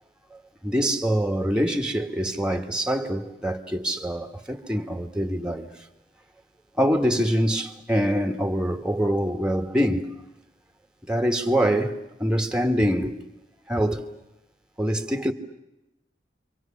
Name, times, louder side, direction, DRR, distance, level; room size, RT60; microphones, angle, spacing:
voice 1, 0.3-5.7 6.8-10.1 11.1-13.1 13.7-14.0 14.8-15.3, equal, 5° right, 1.7 m, -24 dB
29.5 x 24.5 x 7.3 m
head